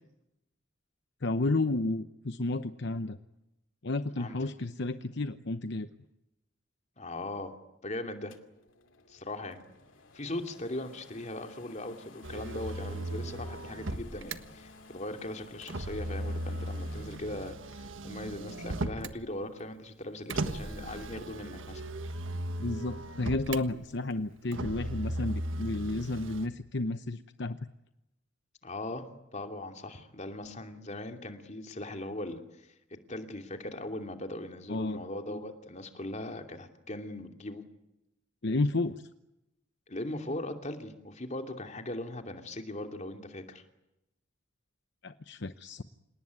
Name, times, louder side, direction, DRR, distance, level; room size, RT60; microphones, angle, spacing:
voice 1, 1.2-3.2 3.8-5.9 22.6-27.6 34.7-35.0 38.4-39.1 45.0-45.8, left 2 dB, 60° left, 10 dB, 0.9 m, -32 dB
voice 2, 7.0-7.6 7.8-8.3 9.1-9.6 10.1-21.8 28.6-32.7 33.1-37.6 39.9-43.6, left 1 dB, 35° left, 5 dB, 2.7 m, -39 dB
sound 1, 8.3-17.2, left 3 dB, 80° left, 2.5 m, -54 dB
Motor vehicle (road), 12.2-14.4 15.6-19.2 20.3-23.6 24.5-26.5, right 1 dB, 80° right, 1.5 m, -37 dB
28.0 x 18.5 x 9.6 m, 0.91 s
head